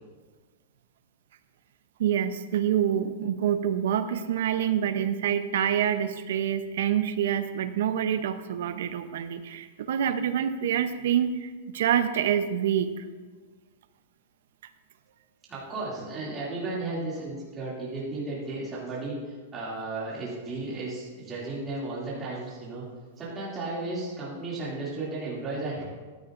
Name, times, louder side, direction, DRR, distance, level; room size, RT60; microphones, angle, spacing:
voice 1, 2.0-12.9, right 9 dB, 60° right, 11 dB, 0.6 m, -26 dB
voice 2, 15.5-22.9 23.2-25.8, right 2 dB, 15° right, -7 dB, 2.4 m, -34 dB
14.5 x 9.7 x 2.5 m, 1.4 s
supercardioid pair, 175°, 0 cm